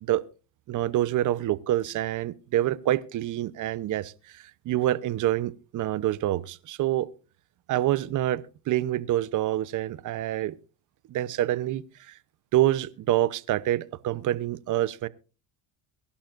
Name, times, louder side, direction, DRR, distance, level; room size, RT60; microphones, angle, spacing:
voice 1, 0.7-7.1 7.7-8.4 8.7-10.6 11.1-12.1 12.5-15.1, right 13 dB, 50° right, 0.9 m, -27 dB
23.0 x 11.5 x 2.6 m
supercardioid pair, 105°, 40 cm